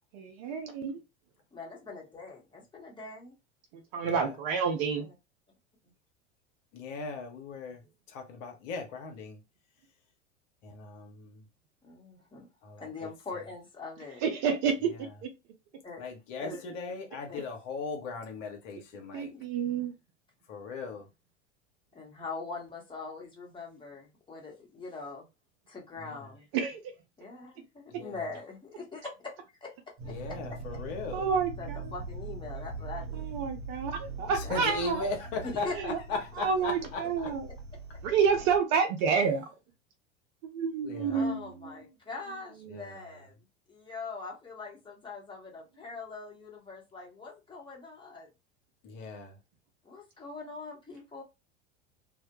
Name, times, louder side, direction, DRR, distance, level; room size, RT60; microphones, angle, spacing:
voice 1, 0.1-1.0 3.9-5.1 14.2-14.9 15.2-15.3 19.1-19.9 26.5-26.8 31.1-31.8 33.1-35.1 35.9-36.0 36.4-36.8 37.0-37.4 38.0-39.5 40.4-41.4 42.7-42.8, right 6 dB, 40° right, 0.5 m, -28 dB
voice 2, 1.5-3.3 5.0-5.1 11.8-12.5 12.8-14.2 15.8-16.0 16.4-16.6 17.3-17.4 19.3-19.4 21.9-25.3 25.7-26.5 27.2-29.3 29.6-29.7 30.0-30.5 31.6-33.3 34.3-34.8 35.4-35.8 36.1-36.2 41.1-43.3 43.7-48.3 49.8-51.2, left 3 dB, 15° left, 1.0 m, -42 dB
voice 3, 6.7-7.8 8.1-9.4 10.6-11.4 12.6-13.1 14.8-15.1 16.0-19.3 20.5-21.1 26.0-26.3 27.9-28.3 30.1-31.3 34.3-37.3 40.8-41.4 42.7-43.2 48.8-49.4, left 3 dB, 45° left, 0.8 m, -38 dB
sound 1, 30.0-38.6, right 3 dB, 65° right, 1.0 m, -42 dB
2.1 x 2.0 x 2.8 m
figure-of-eight pair, 85°, 37 cm